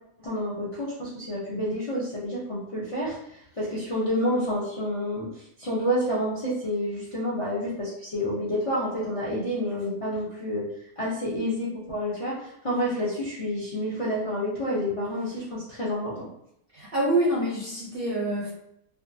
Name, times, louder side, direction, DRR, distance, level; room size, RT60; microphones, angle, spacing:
voice 1, 0.2-10.7 11.0-16.3, equal, 60° left, -8 dB, 0.3 m, -29 dB
voice 2, 16.7-18.5, right 1 dB, 60° right, -6 dB, 0.6 m, -26 dB
2.6 x 2.3 x 2.6 m, 0.76 s
omnidirectional pair, 1.6 m